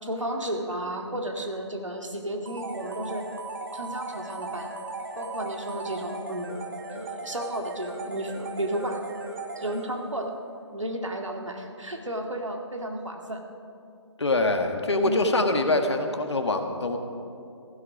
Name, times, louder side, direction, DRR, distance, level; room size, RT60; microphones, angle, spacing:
voice 1, 0.0-3.3 3.7-4.7 5.2-6.6 6.9-9.0 9.6-10.3 10.7-13.4 15.0-15.2, right 1 dB, 80° right, 3 dB, 2.2 m, -33 dB
sound 1, 2.5-10.2, right 3 dB, 45° right, 2.0 m, -37 dB
voice 2, 14.2-17.0, left 2 dB, 65° left, 5 dB, 1.8 m, -24 dB
15.5 x 15.5 x 5.0 m, 2.6 s
figure-of-eight pair, 145°, 16 cm